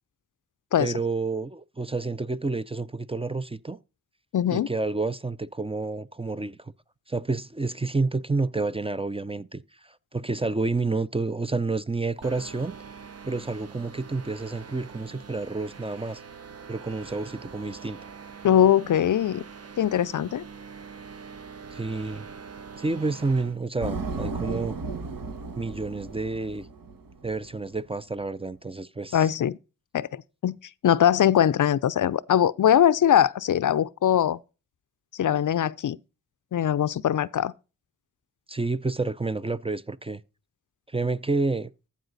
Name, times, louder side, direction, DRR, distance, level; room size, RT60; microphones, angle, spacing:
voice 1, 0.8-3.8 4.5-6.7 7.1-12.7 13.2-16.2 16.7-18.0 21.7-22.3 22.8-24.8 25.6-26.7 27.2-29.3 38.5-40.2 40.9-41.7, right 3 dB, 15° right, 0.5 m, -29 dB
voice 2, 4.3-4.7 18.4-19.4 19.8-20.4 29.1-29.6 29.9-30.6 30.8-34.4 35.2-36.0 36.5-37.5, left 10 dB, 60° left, 0.5 m, -21 dB
sound 1, 12.2-23.6, right 6 dB, 45° right, 0.8 m, -44 dB
sound 2, 23.8-27.5, right 4 dB, 70° right, 1.4 m, -34 dB
14.5 x 4.8 x 4.0 m
cardioid pair, 60°, 35 cm